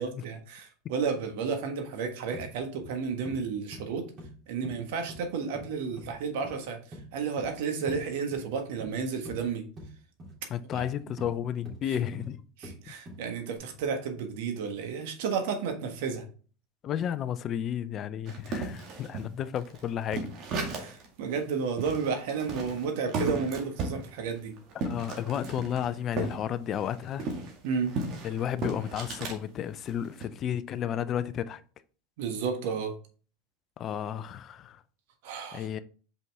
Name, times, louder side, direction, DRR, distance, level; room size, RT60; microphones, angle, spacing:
voice 1, 0.0-4.1 4.5-6.8 7.1-9.7 10.7-10.9 12.6-16.2 20.7-24.5 27.6-27.9 32.2-32.9 35.2-35.7, right 5 dB, 70° right, 1.4 m, -32 dB
sound 1, 2.3-2.5 2.8-3.0 3.2-3.4 3.7-3.9 4.2-4.3 4.6-5.2 5.5-5.7 6.0-6.2 6.4-6.6 6.9-7.0 7.4-7.5 7.9-8.0 8.3-8.9 9.2-9.4 9.8-9.9 10.2-10.4 10.7-10.9 11.2-11.3 11.6-11.8 12.1-12.3 12.6-12.8 13.1-13.3 13.6-13.7, equal, 30° right, 3.3 m, -43 dB
voice 2, 10.5-12.4 16.8-20.3 24.8-27.3 28.2-31.6 33.8-34.8 35.5-35.8, left 9 dB, 40° left, 0.5 m, -32 dB
sound 2, 18.3-21.1 21.4-21.5 21.8-26.4 26.7-29.4 29.9-30.3, right 3 dB, 50° right, 1.9 m, -35 dB
5.6 x 5.3 x 3.5 m
hypercardioid pair, 95°, 0 cm